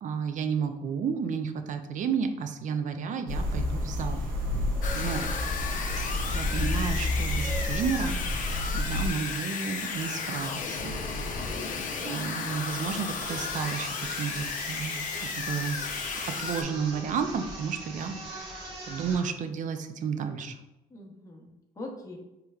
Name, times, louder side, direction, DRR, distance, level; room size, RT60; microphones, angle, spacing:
voice 1, 0.0-4.2 4.9-5.2 6.3-8.2 8.7-11.0 12.0-15.8 16.4-20.6, right 6 dB, 50° right, 7 dB, 0.5 m, -32 dB
sound 1, 3.3-9.1, left 1 dB, 65° right, 1.2 m, -30 dB
voice 2, 4.4-4.8 20.9-22.2, left 2 dB, 20° left, -1 dB, 0.9 m, -45 dB
sound 2, 4.8-16.6, left 5 dB, 50° left, 0.6 m, -34 dB
sound 3, 13.2-19.2, right 2 dB, 85° right, 1.2 m, -42 dB
4.7 x 3.2 x 2.3 m, 0.96 s
cardioid pair, 110°, 17 cm